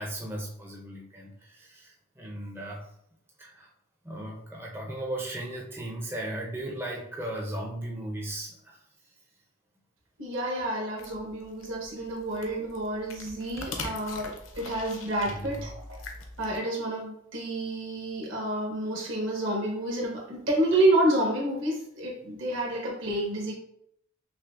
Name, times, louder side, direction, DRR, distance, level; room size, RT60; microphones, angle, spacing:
voice 1, 0.0-2.9 3.4-3.7 4.0-9.1 15.2-15.7, right 1 dB, 10° right, -2 dB, 0.4 m, -37 dB
voice 2, 10.2-16.0 16.4-23.5, right 1 dB, 70° right, -2 dB, 1.1 m, -29 dB
sound 1, 11.0-16.6, left 3 dB, 75° left, 0.6 m, -42 dB
5.6 x 2.0 x 2.4 m, 0.72 s
head